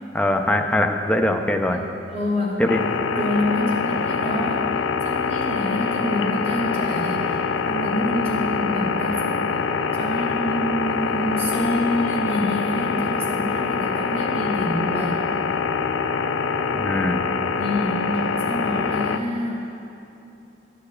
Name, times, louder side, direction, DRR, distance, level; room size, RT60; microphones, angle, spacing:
voice 1, 0.1-1.8 2.6-2.8 16.7-17.2, left 1 dB, 5° left, 4 dB, 0.4 m, -21 dB
voice 2, 2.1-2.6 3.1-4.7 5.0-9.4 9.9-15.2 17.5-18.1 18.4-19.8, left 1 dB, 35° right, -6 dB, 1.7 m, -27 dB
sound 1, 2.7-19.2, left 5 dB, 80° left, 0.3 m, -24 dB
13.0 x 6.8 x 2.3 m, 2.9 s
head